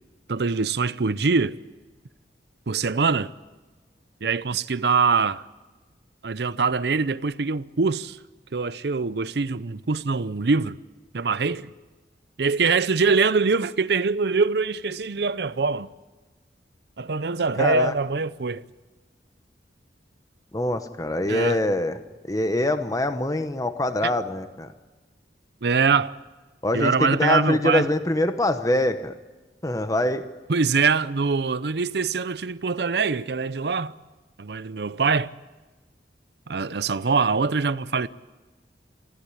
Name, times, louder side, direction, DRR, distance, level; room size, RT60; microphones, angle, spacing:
voice 1, 0.3-1.6 2.7-3.3 4.2-5.4 6.2-8.2 8.5-10.8 11.1-11.7 12.4-15.9 17.0-18.6 21.3-21.6 25.6-26.2 26.7-27.8 30.5-33.9 34.4-35.3 36.5-38.1, right 4 dB, 65° right, 0.6 m, -23 dB
voice 2, 17.6-17.9 20.5-22.0 22.3-24.7 26.6-29.1 29.6-30.2, left 1 dB, 20° left, 0.9 m, -24 dB
23.5 x 15.0 x 10.0 m
head